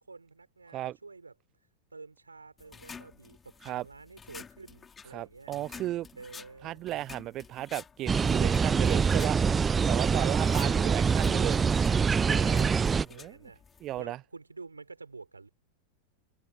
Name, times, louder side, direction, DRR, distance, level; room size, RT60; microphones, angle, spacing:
voice 1, 0.0-1.3 1.9-5.5 6.1-6.8 10.2-10.8 12.2-13.6 14.0-15.5, right 4 dB, 80° right, 5.0 m, -49 dB
sound 1, 2.6-14.0, left 6 dB, 15° left, 3.3 m, -50 dB
voice 2, 5.1-6.1 6.6-11.6 13.1-13.4 13.8-14.2, right 14 dB, 35° right, 0.8 m, -35 dB
sound 2, 8.1-13.1, right 6 dB, 15° right, 0.3 m, -25 dB
figure-of-eight pair, 90°, 0 cm